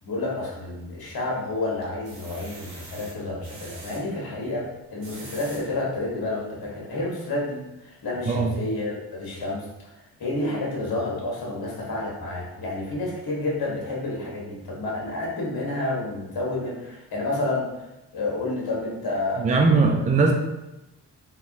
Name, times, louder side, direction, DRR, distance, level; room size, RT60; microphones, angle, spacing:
voice 1, 0.0-9.7 10.0-17.9 18.1-20.0, left 2 dB, 55° left, -4 dB, 1.4 m, -30 dB
sound 1, 0.7-1.3 1.8-4.0 4.8-5.6 6.2-6.3 6.7-6.8, right 2 dB, 80° right, 0.9 m, -44 dB
voice 2, 19.4-20.3, right 4 dB, 20° right, 3 dB, 0.4 m, -19 dB
3.3 x 3.1 x 2.6 m, 0.95 s
hypercardioid pair, 40°, 45 cm